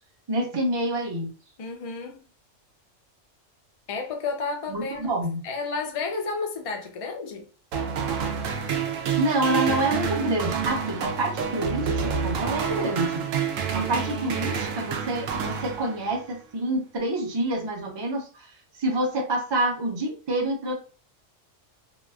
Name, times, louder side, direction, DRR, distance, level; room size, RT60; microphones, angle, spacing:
voice 1, 0.3-1.4 4.7-5.5 9.2-13.3 13.7-18.5 18.8-20.7, right 1 dB, 35° right, 0.4 m, -27 dB
voice 2, 1.6-2.3 3.9-5.1 5.4-7.5 13.7-14.4, left 4 dB, 55° left, 0.4 m, -32 dB
sound 1, 7.7-16.3, right 7 dB, 85° right, 1.0 m, -28 dB
3.0 x 2.3 x 2.4 m
omnidirectional pair, 1.3 m